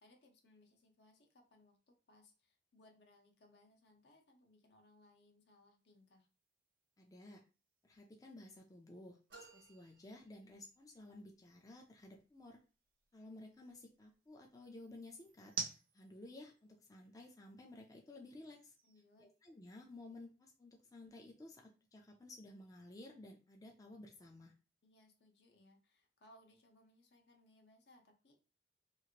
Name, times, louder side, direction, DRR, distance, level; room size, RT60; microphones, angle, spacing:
voice 1, 0.0-6.3 18.8-19.3 24.8-28.4, left 1 dB, 70° left, 3 dB, 0.7 m, -67 dB
sound 1, 5.8-20.0, right 5 dB, 50° right, 0.5 m, -54 dB
voice 2, 7.0-7.4 7.8-9.2 9.5-12.6 13.1-15.5 15.9-18.7 19.2-24.5, left 2 dB, 20° left, 1 dB, 0.4 m, -55 dB
sound 2, 9.3-11.0, right 3 dB, 75° right, 0.9 m, -61 dB
3.0 x 2.4 x 2.8 m, 0.34 s
head